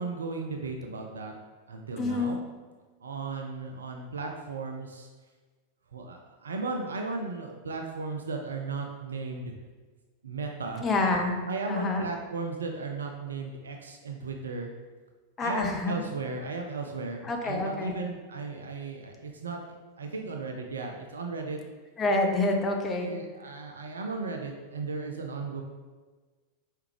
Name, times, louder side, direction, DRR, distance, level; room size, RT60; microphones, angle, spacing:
voice 1, 0.0-1.3 1.7-2.4 3.0-5.1 5.9-9.5 10.2-10.9 11.4-14.7 15.4-19.6 20.0-21.6 23.0-25.6, right 3 dB, 70° right, 2 dB, 0.4 m, -35 dB
voice 2, 2.0-2.4 10.8-12.0 15.4-16.0 17.3-18.0 22.0-23.1, left 2 dB, 20° left, 2 dB, 0.7 m, -27 dB
4.7 x 3.3 x 3.2 m, 1.3 s
figure-of-eight pair, 90°, 0 cm